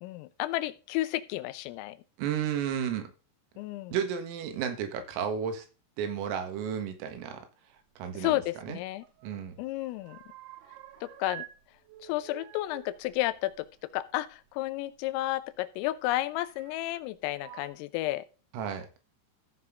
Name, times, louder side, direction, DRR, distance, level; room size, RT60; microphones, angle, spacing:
voice 1, 0.0-2.0 3.6-3.9 8.1-9.0 9.6-10.2 11.0-11.4 12.0-13.7 13.9-18.3, left 16 dB, 90° left, 13 dB, 3.4 m, -32 dB
voice 2, 2.2-3.1 3.9-5.7 6.0-7.5 8.0-8.8 9.2-9.6 18.5-18.9, right 8 dB, 85° right, 7 dB, 4.3 m, -33 dB
sound 1, 8.5-9.4 9.7-11.6 11.8-14.3 15.4-15.5 16.5-17.0 17.4-17.7, right 12 dB, 70° right, 3.4 m, -49 dB
14.0 x 6.0 x 3.7 m, 0.34 s
omnidirectional pair, 5.8 m